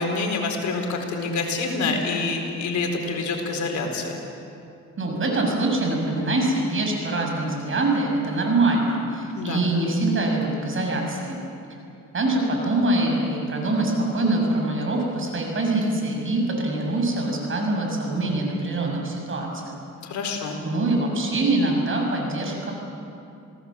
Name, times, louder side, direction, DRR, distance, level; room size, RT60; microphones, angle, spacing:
voice 1, 0.0-4.2 9.3-9.6 20.0-20.6, left 3 dB, 70° left, 2 dB, 4.4 m, -27 dB
voice 2, 5.0-11.4 12.1-19.8 20.6-22.7, right 2 dB, 40° right, 1 dB, 6.7 m, -24 dB
28.5 x 18.0 x 7.6 m, 2.6 s
cardioid pair, 90°, 30 cm